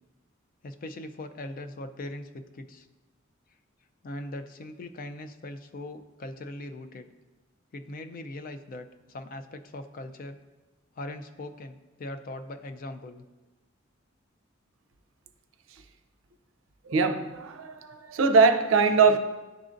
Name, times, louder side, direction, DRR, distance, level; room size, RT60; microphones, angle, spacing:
voice 1, 0.6-2.9 4.0-7.1 7.7-10.4 11.0-13.2, left 1 dB, 45° left, 9 dB, 0.4 m, -40 dB
voice 2, 16.9-19.2, right 4 dB, 80° right, 8 dB, 0.5 m, -22 dB
10.5 x 3.8 x 2.5 m, 1.2 s
head